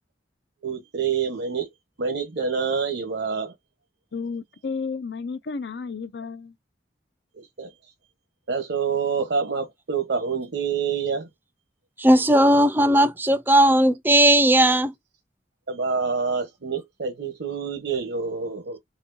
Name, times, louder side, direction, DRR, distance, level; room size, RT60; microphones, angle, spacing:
voice 1, 0.6-1.7 2.0-3.5 7.3-7.7 8.5-11.3 15.7-18.8, right 5 dB, 80° right, 1.0 m, -27 dB
voice 2, 4.1-6.5, left 4 dB, 70° left, 0.5 m, -32 dB
voice 3, 12.0-14.9, right 1 dB, 10° right, 0.4 m, -17 dB
4.1 x 3.5 x 2.6 m
head